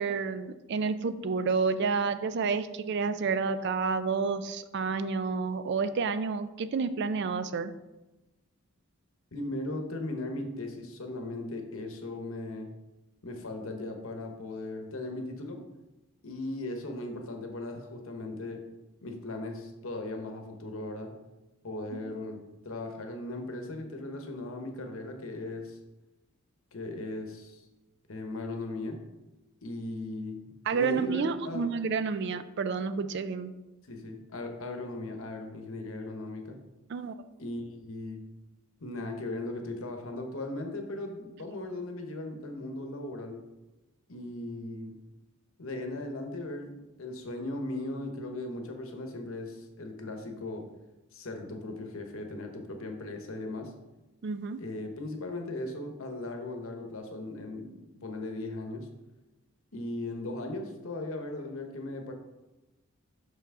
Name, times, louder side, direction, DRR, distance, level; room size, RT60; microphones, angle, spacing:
voice 1, 0.0-7.7 21.9-22.2 30.7-33.5 36.9-37.1 54.2-54.6, right 5 dB, 50° right, 11 dB, 0.3 m, -30 dB
voice 2, 9.3-12.7 13.2-15.6 16.2-18.6 19.0-21.1 21.6-25.8 26.7-27.6 28.1-29.0 29.6-31.7 33.9-36.6 37.4-38.2 38.8-43.4 44.1-44.9 45.6-46.7 47.0-50.7 51.1-53.7 54.6-58.9 59.7-62.1, left 2 dB, 65° left, 4 dB, 0.9 m, -38 dB
6.0 x 5.6 x 3.7 m, 1.0 s
head